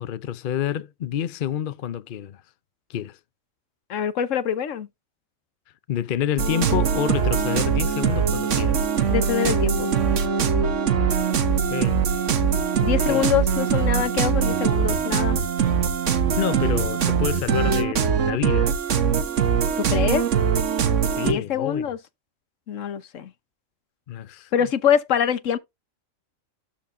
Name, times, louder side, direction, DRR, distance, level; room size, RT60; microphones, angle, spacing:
voice 1, 0.0-2.4 2.9-3.2 5.9-8.9 11.5-12.0 13.1-13.2 16.4-18.7 21.2-21.9 24.1-24.7, left 10 dB, 55° left, 0.6 m, -28 dB
voice 2, 3.9-4.9 9.1-9.9 12.8-15.4 19.8-20.3 21.2-22.0 22.7-23.3 24.5-25.6, left 8 dB, 70° left, 1.2 m, -24 dB
sound 1, 6.4-21.3, right 7 dB, 65° right, 1.4 m, -22 dB
12.5 x 4.4 x 2.6 m
omnidirectional pair, 1.4 m